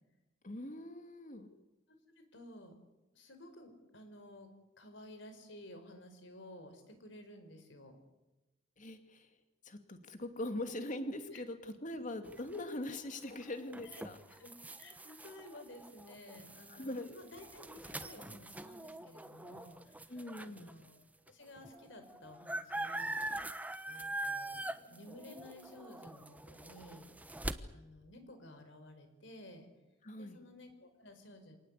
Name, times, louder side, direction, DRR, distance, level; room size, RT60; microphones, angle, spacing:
voice 1, 0.4-1.5 8.8-9.3 9.6-14.2 16.7-17.2 20.1-20.7 30.0-30.4, left 1 dB, 40° left, 7 dB, 2.5 m, -42 dB
voice 2, 2.2-2.8 3.1-4.5 4.8-8.0 11.3-11.4 11.9-12.1 13.9-14.0 14.3-14.5 14.8-23.3 23.9-27.1 27.7-29.7 30.1-31.6, left 1 dB, 65° left, 7 dB, 4.9 m, -54 dB
sound 1, 12.2-20.7 21.3-21.4 21.6-27.5, right 1 dB, 10° right, 1.0 m, -43 dB
26.5 x 19.0 x 8.4 m, 1.0 s
head